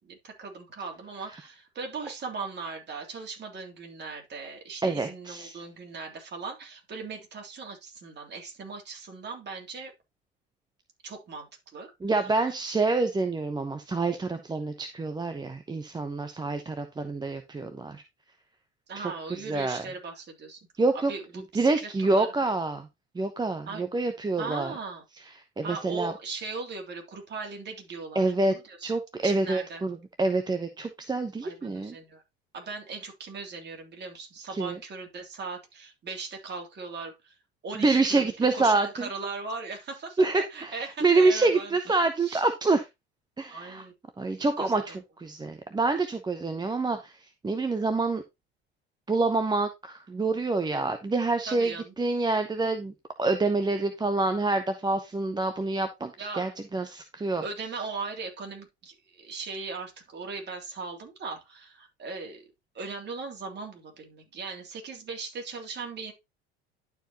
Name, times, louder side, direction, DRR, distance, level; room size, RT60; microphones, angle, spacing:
voice 1, 0.0-9.9 11.0-11.5 11.7-11.9 12.2-12.5 18.9-20.6 21.1-22.6 23.7-23.8 24.4-25.0 25.6-28.9 29.2-29.8 31.4-32.2 32.5-37.3 37.6-42.5 43.5-43.9 44.4-44.8 51.5-51.9 56.2-56.9 57.4-62.4 62.7-66.1, right 4 dB, 35° right, 2 dB, 3.2 m, -39 dB
voice 2, 4.8-5.5 12.0-18.0 18.9-19.8 20.8-21.1 21.5-22.9 23.1-24.7 25.6-26.1 28.1-28.6 28.8-32.0 34.5-34.8 37.8-39.1 40.2-40.7 41.0-42.8 43.4-43.8 44.2-47.1 47.4-48.2 49.1-52.9 53.2-57.4, right 3 dB, 15° right, 7 dB, 0.9 m, -27 dB
11.5 x 4.7 x 2.9 m, 0.22 s
figure-of-eight pair, 70°, 31 cm